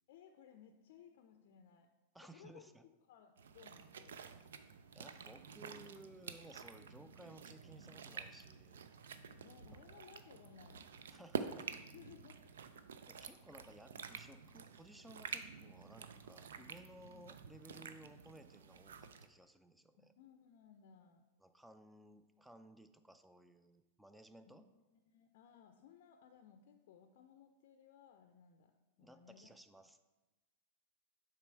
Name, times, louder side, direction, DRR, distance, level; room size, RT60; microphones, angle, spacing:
voice 1, 0.1-1.9 2.2-2.7 3.1-4.2 9.4-10.9 11.5-11.6 11.9-12.4 13.5-13.6 17.0-17.2 20.0-21.2 24.5-29.5, left 8 dB, 65° left, 6 dB, 0.4 m, -61 dB
voice 2, 2.1-2.8 4.9-8.8 11.1-11.7 13.0-20.1 21.4-24.6 29.0-30.0, right 1 dB, 5° right, 10 dB, 0.4 m, -58 dB
sound 1, 3.4-19.3, right 6 dB, 80° right, 0.4 m, -49 dB
6.8 x 3.1 x 4.6 m, 1.1 s
hypercardioid pair, 110°, 0 cm